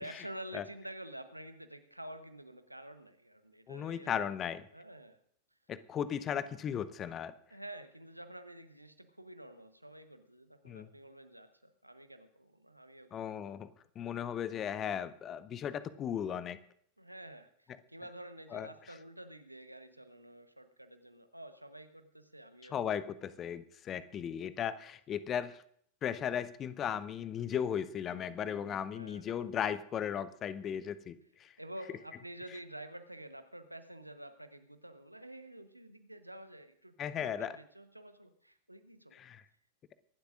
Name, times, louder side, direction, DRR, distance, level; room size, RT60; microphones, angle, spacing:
voice 1, 0.0-4.1 4.7-5.2 7.5-13.3 17.0-22.8 28.9-29.5 31.6-39.2, right 1 dB, 85° right, 10 dB, 1.0 m, -49 dB
voice 2, 3.7-4.7 5.7-7.3 10.6-10.9 13.1-13.7 14.0-16.6 18.5-18.7 22.7-25.6 26.0-31.5 37.0-37.5 39.1-39.4, left 8 dB, 30° left, 16 dB, 0.7 m, -36 dB
24.5 x 11.5 x 2.5 m, 0.64 s
figure-of-eight pair, 90°, 0 cm